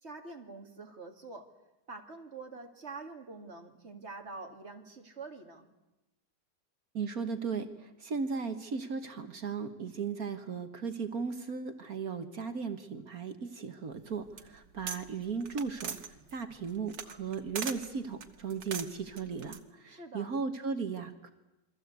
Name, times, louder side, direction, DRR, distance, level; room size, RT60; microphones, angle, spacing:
voice 1, 0.0-1.5 1.9-5.7 19.8-20.3, right 3 dB, 35° right, 4 dB, 2.7 m, -46 dB
voice 2, 6.9-21.3, right 5 dB, 55° right, 8 dB, 1.8 m, -36 dB
sound 1, 14.0-15.0 15.3-17.9 18.2-19.6, right 7 dB, 80° right, 2.2 m, -40 dB
28.5 x 23.0 x 8.3 m, 0.96 s
omnidirectional pair, 1.9 m